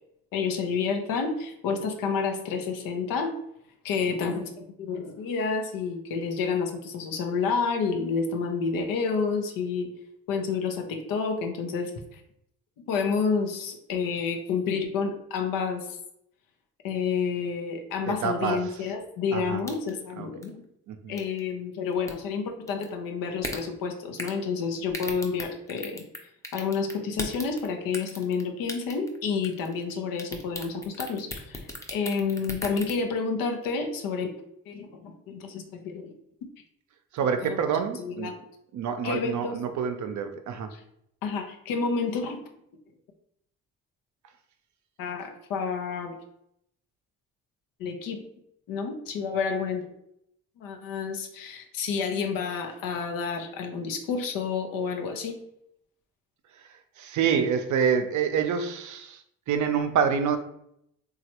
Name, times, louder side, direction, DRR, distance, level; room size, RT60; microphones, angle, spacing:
voice 1, 0.3-3.3 3.8-9.9 10.3-12.2 12.9-15.9 16.8-20.6 21.1-26.0 26.5-31.6 31.9-34.3 34.7-36.1 37.4-37.6 38.0-38.3 39.0-39.6 40.7-40.8 41.2-42.4 45.0-46.2 47.8-48.2 48.7-49.8 50.6-55.4, left 5 dB, 80° left, 4 dB, 0.6 m, -29 dB
voice 2, 18.1-18.7 19.3-19.6 20.2-20.3 20.9-21.1 37.1-38.3 38.7-40.7 57.0-59.2 59.5-60.4, right 7 dB, 60° right, 7 dB, 0.5 m, -27 dB
sound 1, 19.7-20.0 20.4-20.5 21.2-21.4 21.9-22.1 22.7-22.9 23.4-23.6 24.2-24.4 24.9-26.2 26.4-27.7 27.9-28.4 28.7-29.2 29.4-29.9 30.2-33.0, left 1 dB, 10° left, 0.6 m, -36 dB
3.1 x 2.3 x 2.9 m, 0.75 s
supercardioid pair, 55°, 34 cm